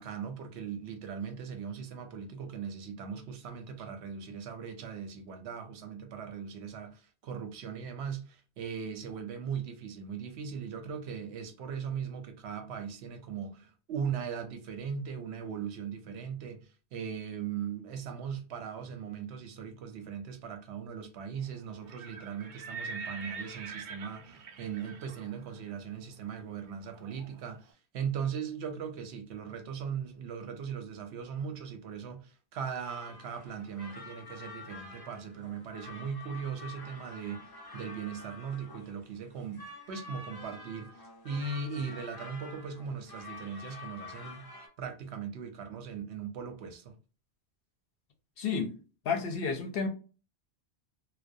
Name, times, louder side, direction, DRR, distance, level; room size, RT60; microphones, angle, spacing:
voice 1, 0.0-44.5 44.8-47.0, right 6 dB, 80° right, 0.8 m, -39 dB
Livestock farm animals working animals, 21.7-27.6, right 4 dB, 60° right, 0.6 m, -45 dB
sound 1, 32.8-44.7, left 3 dB, 35° left, 0.3 m, -48 dB
voice 2, 48.4-48.7 49.1-49.9, left 5 dB, 65° left, 0.7 m, -31 dB
2.3 x 2.1 x 2.6 m
omnidirectional pair, 1.1 m